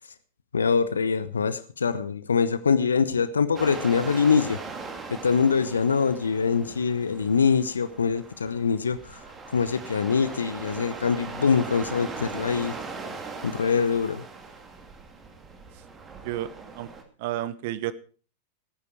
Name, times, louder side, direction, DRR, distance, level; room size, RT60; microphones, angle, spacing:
voice 1, 0.5-4.6 5.1-9.2 9.5-12.7 13.4-14.2, left 5 dB, 70° left, 14 dB, 0.8 m, -24 dB
sound 1, 3.6-17.0, right 4 dB, 20° right, 2.3 m, -40 dB
voice 2, 17.2-17.9, right 13 dB, 50° right, 17 dB, 0.7 m, -30 dB
18.0 x 9.7 x 4.6 m, 0.39 s
figure-of-eight pair, 90°, 0 cm